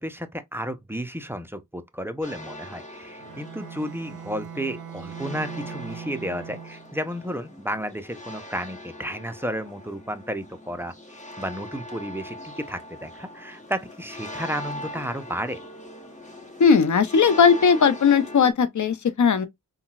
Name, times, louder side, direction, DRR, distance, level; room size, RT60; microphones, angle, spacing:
voice 1, 0.0-10.9 11.4-15.6, equal, 5° right, 0.6 m, -32 dB
sound 1, 2.2-18.5, left 1 dB, 20° left, 1.2 m, -41 dB
Bowed string instrument, 3.2-7.0, right 8 dB, 55° right, 0.6 m, -40 dB
voice 2, 16.6-19.5, left 6 dB, 50° left, 0.7 m, -18 dB
3.8 x 2.3 x 2.3 m
cardioid pair, 45°, 38 cm